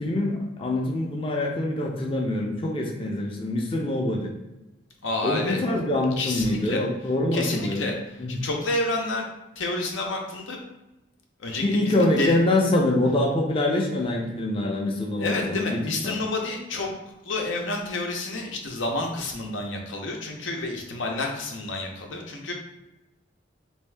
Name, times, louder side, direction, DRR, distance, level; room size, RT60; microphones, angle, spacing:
voice 1, 0.0-4.3 5.2-7.9 8.2-8.4 11.6-15.8 16.0-16.2, left 1 dB, 30° left, 0 dB, 0.4 m, -25 dB
voice 2, 5.0-5.6 6.2-6.8 7.3-7.9 8.3-9.3 9.6-10.6 11.4-12.4 15.2-16.9 17.2-22.5, left 2 dB, 90° left, 1 dB, 0.7 m, -29 dB
3.5 x 2.7 x 3.3 m, 0.97 s
head